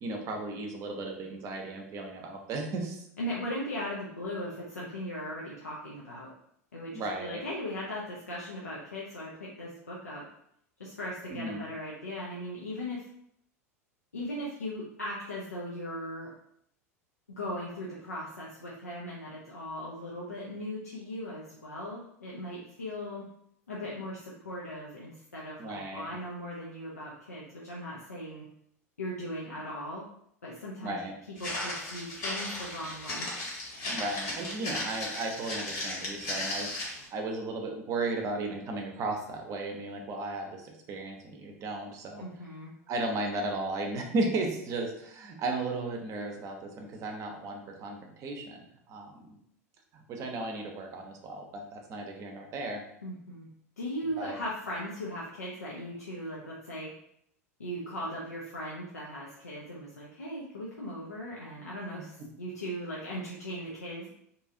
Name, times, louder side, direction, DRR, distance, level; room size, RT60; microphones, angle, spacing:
voice 1, 0.0-3.1 6.9-7.4 11.3-11.7 25.6-26.2 30.8-31.1 33.9-42.2 42.9-49.4 49.9-52.8 54.2-54.4 62.0-62.3, right 2 dB, 40° right, 2 dB, 0.7 m, -35 dB
voice 2, 3.2-6.3 6.7-10.2 10.8-13.0 14.1-16.3 17.3-23.3 23.7-28.4 29.0-30.1 30.4-31.0 31.4-33.3 42.2-42.7 53.0-53.5 53.8-56.9 57.6-64.1, equal, 90° left, -5 dB, 0.5 m, -38 dB
Walk footsteps, 31.4-37.1, left 1 dB, 60° left, 1.2 m, -36 dB
2.8 x 2.3 x 2.7 m, 0.71 s
hypercardioid pair, 85°, 8 cm